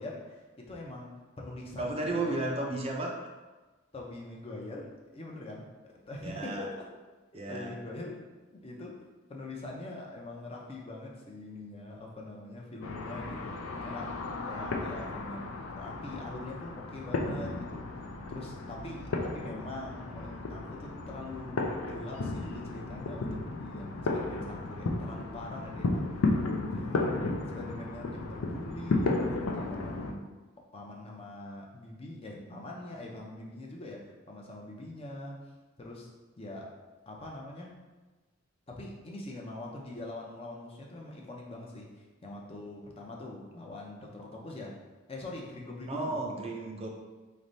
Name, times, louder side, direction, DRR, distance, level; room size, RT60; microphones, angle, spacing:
voice 1, 0.0-2.4 3.9-5.7 6.1-6.9 7.3-8.2 8.5-9.0 9.3-15.5 15.8-26.4 26.7-30.3 30.7-35.4 35.8-36.1 36.4-36.8 37.1-37.8 38.7-44.8 45.1-46.2 46.4-46.5, left 2 dB, 30° left, -1 dB, 0.5 m, -43 dB
voice 2, 1.8-3.2 6.2-6.7 7.3-7.7 45.9-46.9, right 2 dB, 30° right, 0 dB, 0.4 m, -33 dB
sound 1, 12.8-30.1, left 2 dB, 90° left, 0.4 m, -34 dB
4.0 x 3.2 x 2.6 m, 1.2 s
head